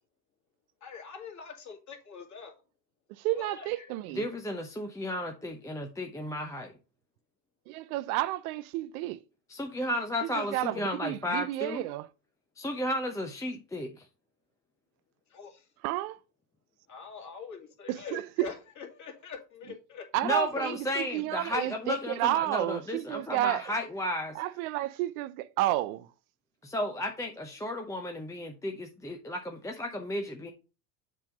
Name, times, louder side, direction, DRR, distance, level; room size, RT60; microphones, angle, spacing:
voice 1, 0.8-2.6 3.3-3.9 10.7-10.9 15.3-15.7 16.9-20.8, left 6 dB, 35° left, 2.4 m, -44 dB
voice 2, 3.2-4.3 7.7-9.2 10.2-12.1 15.8-16.2 17.9-18.5 20.1-23.6 24.4-26.1, right 15 dB, 60° right, 0.5 m, -31 dB
voice 3, 4.1-6.7 9.5-11.9 12.6-14.0 20.2-24.4 26.6-30.5, left 1 dB, 5° left, 0.7 m, -33 dB
7.5 x 3.5 x 5.1 m
hypercardioid pair, 75°, 49 cm